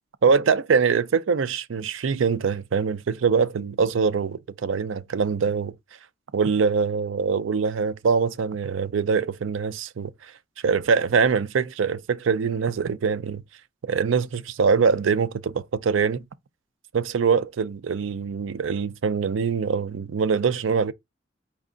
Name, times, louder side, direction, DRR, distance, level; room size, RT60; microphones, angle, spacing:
voice 1, 0.2-5.7 6.3-10.1 10.6-13.4 13.8-16.2 16.9-20.9, right 5 dB, 85° right, 0.5 m, -23 dB
4.6 x 2.4 x 3.8 m
head